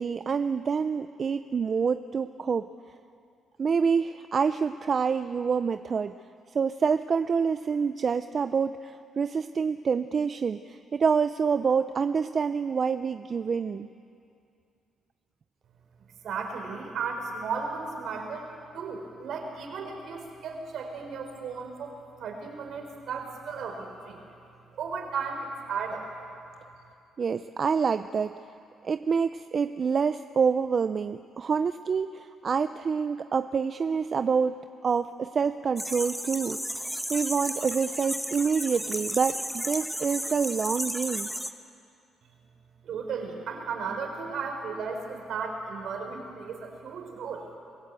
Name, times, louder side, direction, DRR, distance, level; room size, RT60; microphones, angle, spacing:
voice 1, 0.0-2.7 3.6-6.1 6.5-13.9 27.2-28.3 28.8-34.6 34.8-41.3, right 6 dB, 45° right, 11 dB, 0.5 m, -27 dB
voice 2, 16.2-18.5 18.7-24.2 24.8-26.1 42.8-47.5, right 5 dB, 70° right, 2 dB, 4.1 m, -35 dB
sound 1, 35.8-41.5, equal, ahead, 1.1 m, -33 dB
24.5 x 16.0 x 8.3 m, 2.5 s
cardioid pair, 90°, 0 cm